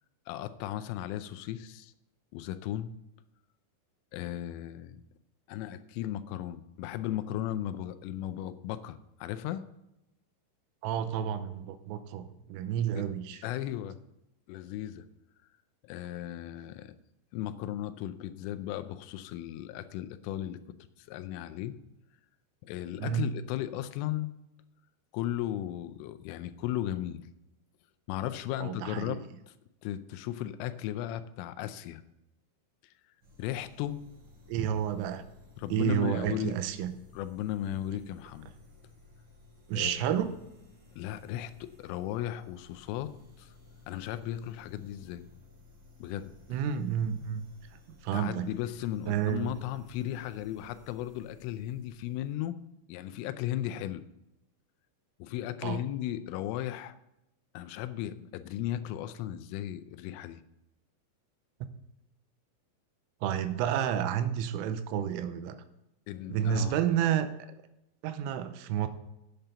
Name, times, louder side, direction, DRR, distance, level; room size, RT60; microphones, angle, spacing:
voice 1, 0.3-1.9 2.3-2.9 4.1-5.0 5.5-9.6 12.6-12.7 12.9-13.1 13.4-14.0 14.5-15.0 15.8-16.9 17.3-20.6 21.0-21.8 22.6-24.3 25.1-27.3 28.1-29.2 29.8-32.0 33.4-34.0 35.6-36.6 37.1-38.5 39.8-40.2 41.0-43.1 43.4-43.5 43.9-45.3 46.0-46.3 48.1-52.6 52.9-54.0 55.2-56.9 57.5-60.4 66.1-66.8, left 12 dB, 85° left, 12 dB, 3.2 m, -36 dB
voice 2, 10.8-13.5 23.0-23.3 28.6-29.2 34.5-35.2 35.7-36.9 39.7-40.4 46.5-47.4 48.0-48.5 49.1-49.5 55.6-55.8 63.2-65.6 66.3-67.3 68.0-68.9, right 9 dB, 90° right, 10 dB, 3.4 m, -30 dB
sound 1, 33.2-52.4, left 3 dB, 45° right, 4.3 m, -57 dB
8.9 x 8.0 x 6.8 m, 0.88 s
omnidirectional pair, 5.7 m